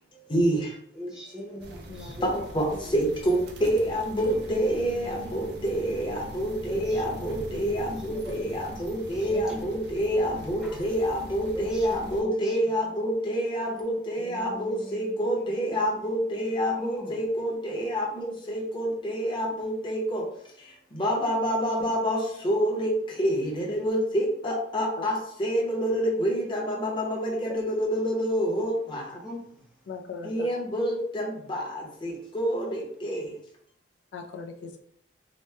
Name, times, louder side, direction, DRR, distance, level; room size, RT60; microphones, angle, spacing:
voice 1, 0.3-0.6 2.2-20.2 20.9-22.9 23.2-29.0 30.2-31.6 32.0-33.3, equal, 25° left, -2 dB, 0.8 m, -27 dB
voice 2, 0.9-3.0 6.6-10.0 10.6-10.8 11.5-12.7 14.2-15.4 15.7-15.8 16.7-17.3 20.8-21.0 29.2-29.9, equal, 5° right, -2 dB, 0.4 m, -42 dB
sound 1, 1.6-12.2, right 1 dB, 65° right, 0.5 m, -42 dB
voice 3, 29.9-30.5 34.1-34.8, left 5 dB, 70° left, 4 dB, 0.3 m, -39 dB
2.9 x 2.0 x 3.3 m, 0.67 s
head